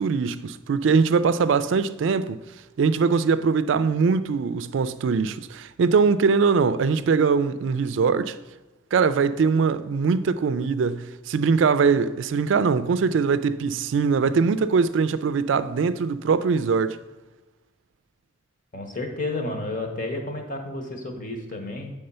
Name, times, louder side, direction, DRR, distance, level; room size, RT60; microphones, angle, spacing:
voice 1, 0.0-2.4 2.8-8.4 8.9-17.0, right 5 dB, 70° right, 0.3 m, -22 dB
voice 2, 18.7-21.9, left 2 dB, 45° left, 1.1 m, -31 dB
7.8 x 3.6 x 5.5 m
head